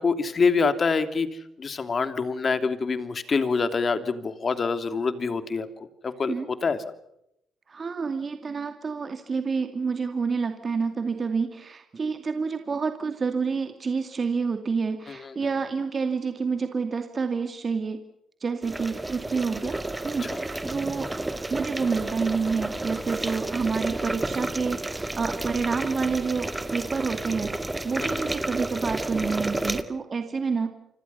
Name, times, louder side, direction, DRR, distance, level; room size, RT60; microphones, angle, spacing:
voice 1, 0.0-5.7 6.0-6.8 15.1-15.3 19.6-19.7 20.2-20.4 28.0-28.2, left 4 dB, 40° left, 10 dB, 2.9 m, -26 dB
voice 2, 7.7-18.0 18.4-19.8 20.0-21.1 21.5-24.8 25.2-30.7, right 5 dB, 40° right, 7 dB, 2.5 m, -28 dB
sound 1, 18.6-29.8, right 2 dB, 15° right, 2.2 m, -31 dB
29.5 x 25.5 x 5.7 m, 0.79 s
cardioid pair, 90°, 0 cm